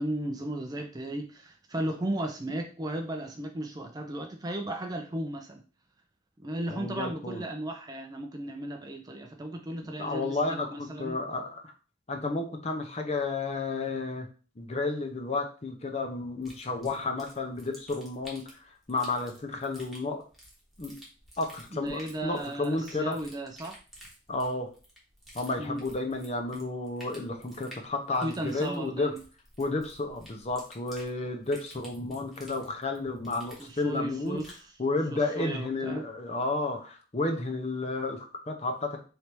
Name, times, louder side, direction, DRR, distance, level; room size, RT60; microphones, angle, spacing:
voice 1, 0.0-5.6 6.4-11.2 21.7-23.7 25.6-25.8 28.2-29.2 33.7-34.5 35.1-36.0, right 1 dB, 20° right, 4 dB, 0.4 m, -35 dB
voice 2, 6.7-7.4 9.8-11.7 12.1-14.3 14.6-20.2 20.8-20.9 21.4-23.2 24.3-24.7 25.3-29.1 29.6-34.4 34.8-39.0, left 3 dB, 35° left, 4 dB, 0.6 m, -32 dB
sound 1, 16.4-34.7, equal, ahead, 1.0 m, -52 dB
3.3 x 2.7 x 4.5 m, 0.36 s
head